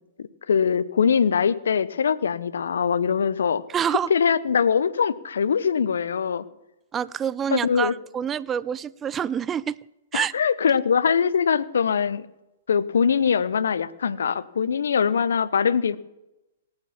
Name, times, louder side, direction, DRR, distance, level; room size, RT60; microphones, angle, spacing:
voice 1, 0.2-3.6 4.1-6.4 7.5-7.9 10.1-12.3 12.7-16.0, left 6 dB, 70° left, 17 dB, 0.8 m, -22 dB
voice 2, 3.7-4.1 6.9-9.8 10.1-10.3, right 8 dB, 20° right, 20 dB, 0.4 m, -27 dB
18.0 x 9.0 x 7.2 m, 0.97 s
figure-of-eight pair, 115°, 0 cm